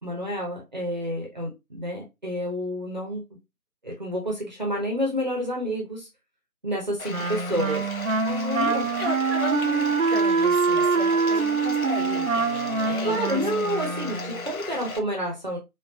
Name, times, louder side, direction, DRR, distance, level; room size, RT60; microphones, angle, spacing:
voice 1, 0.0-3.2 3.8-6.1 6.6-7.8 8.2-8.9 13.0-15.6, equal, 30° right, 0.9 m, -29 dB
Bathtub (filling or washing), 7.0-15.0, left 3 dB, 65° left, 0.8 m, -37 dB
Wind instrument woodwind instrument, 7.1-14.5, right 4 dB, 60° right, 0.7 m, -24 dB
voice 2, 8.7-13.4, left 2 dB, 40° left, 2.2 m, -35 dB
5.6 x 2.5 x 2.6 m
figure-of-eight pair, 160°, 45 cm